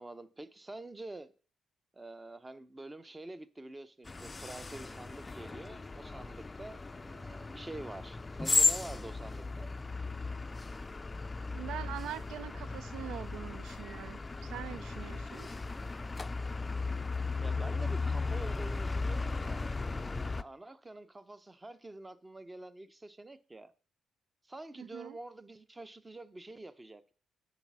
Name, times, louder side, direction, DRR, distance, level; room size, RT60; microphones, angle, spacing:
voice 1, 0.0-1.3 1.9-9.7 17.4-19.7 20.2-23.7 24.4-27.1, right 2 dB, 20° right, 0.7 m, -47 dB
sound 1, 4.1-20.4, left 3 dB, 25° left, 0.4 m, -35 dB
voice 2, 11.5-15.5 24.8-25.2, right 11 dB, 85° right, 0.4 m, -43 dB
9.8 x 4.1 x 6.1 m
cardioid pair, 90°, 0 cm